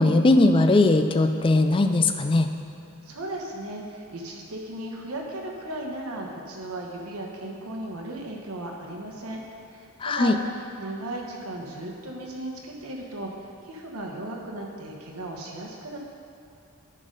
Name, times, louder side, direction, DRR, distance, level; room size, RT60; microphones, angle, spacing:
voice 1, 0.0-2.5 10.0-10.3, left 2 dB, 25° left, 7 dB, 0.3 m, -19 dB
voice 2, 3.0-9.4 9.7-13.3 13.6-16.0, right 1 dB, 85° right, 0 dB, 1.1 m, -36 dB
10.5 x 3.9 x 5.2 m, 2.7 s
head